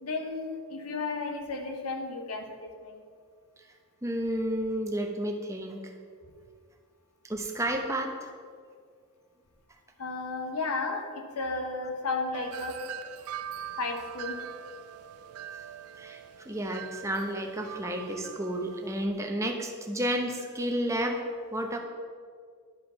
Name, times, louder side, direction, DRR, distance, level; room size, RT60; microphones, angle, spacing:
voice 1, 0.0-3.0 10.0-11.1 11.3-12.9 13.8-14.4, left 3 dB, 90° left, 4 dB, 1.1 m, -33 dB
voice 2, 4.0-5.9 7.3-8.3 16.0-21.2 21.5-21.8, right 1 dB, 15° right, 3 dB, 0.7 m, -31 dB
Wind chime, 12.3-19.1, right 9 dB, 85° right, 0.4 m, -42 dB
10.5 x 4.9 x 5.7 m, 2.1 s
head